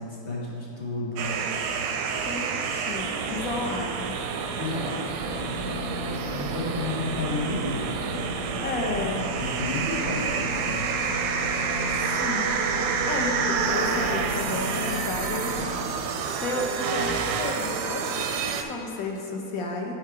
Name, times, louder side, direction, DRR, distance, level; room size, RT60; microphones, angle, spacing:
voice 1, 0.0-1.4 4.6-5.1 6.3-8.0 9.3-10.9, left 2 dB, 40° left, -4 dB, 1.5 m, -32 dB
sound 1, 1.2-18.6, right 6 dB, 85° right, 1.1 m, -29 dB
voice 2, 2.2-4.2 8.6-9.2 11.9-15.5 16.4-20.0, left 3 dB, 65° left, 0 dB, 1.3 m, -32 dB
sound 2, 5.1-15.7, left 2 dB, 60° right, 0.6 m, -35 dB
8.6 x 4.3 x 4.8 m, 2.9 s
omnidirectional pair, 1.6 m